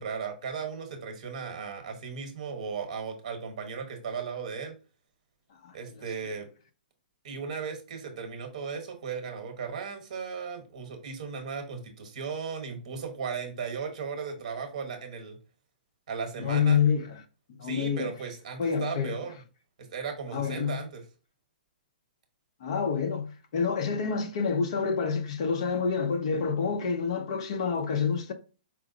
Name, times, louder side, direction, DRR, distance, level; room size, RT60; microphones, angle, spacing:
voice 1, 0.0-4.8 5.7-6.5 7.2-15.4 16.1-16.8 17.6-19.4 19.8-21.0, right 6 dB, 40° right, 1.0 m, -36 dB
voice 2, 16.4-17.2 17.6-18.1 18.6-19.2 20.3-20.8 22.6-28.3, left 6 dB, 35° left, 0.6 m, -27 dB
4.7 x 2.0 x 3.7 m
hypercardioid pair, 180°, 5 cm